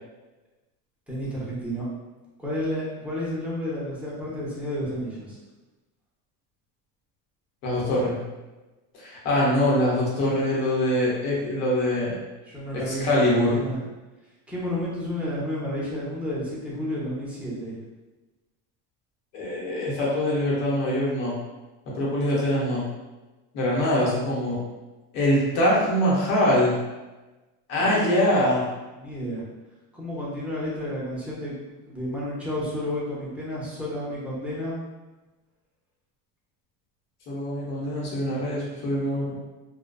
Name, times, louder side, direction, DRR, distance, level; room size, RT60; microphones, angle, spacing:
voice 1, 1.1-1.9 2.4-5.4 12.5-13.8 14.5-17.8 27.7-28.1 29.0-29.4 29.9-34.8, left 1 dB, 5° right, -8 dB, 0.6 m, -31 dB
voice 2, 7.6-8.2 9.0-12.2 12.7-13.6 19.3-21.3 21.9-22.8 23.5-24.6 25.1-26.7 27.7-28.6 37.3-39.3, left 1 dB, 80° left, -5 dB, 1.0 m, -23 dB
2.5 x 2.2 x 2.2 m, 1.1 s
cardioid pair, 125°, 45 cm